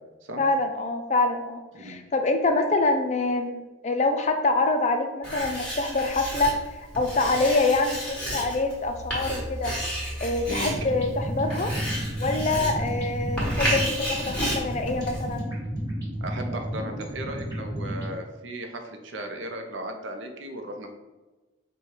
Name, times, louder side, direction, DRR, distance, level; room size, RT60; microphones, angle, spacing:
voice 1, 0.4-6.6 7.0-9.7 10.2-11.7 12.2-15.5, left 2 dB, 35° left, 6 dB, 0.4 m, -25 dB
Writing, 5.2-15.4, equal, 5° left, 1.3 m, -32 dB
sound 1, 10.5-18.1, equal, 20° right, 1.3 m, -32 dB
voice 2, 10.5-10.8 16.2-21.0, right 1 dB, 70° right, 4 dB, 0.6 m, -36 dB
4.8 x 2.3 x 4.3 m, 1.2 s
head